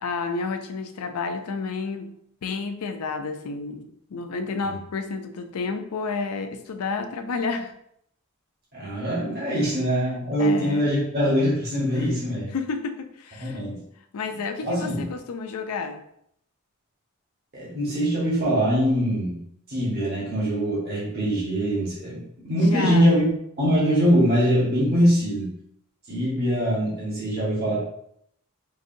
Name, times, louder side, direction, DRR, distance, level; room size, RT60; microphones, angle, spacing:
voice 1, 0.0-7.7 10.4-10.9 12.0-12.1 12.5-13.6 14.1-16.0 22.7-23.1, left 4 dB, 85° left, 7 dB, 0.5 m, -31 dB
voice 2, 8.7-12.5 13.4-13.8 14.6-15.1 17.5-19.4 19.7-23.2 23.6-25.5 26.1-27.8, equal, 45° right, -7 dB, 1.3 m, -23 dB
4.8 x 2.6 x 2.6 m, 0.73 s
head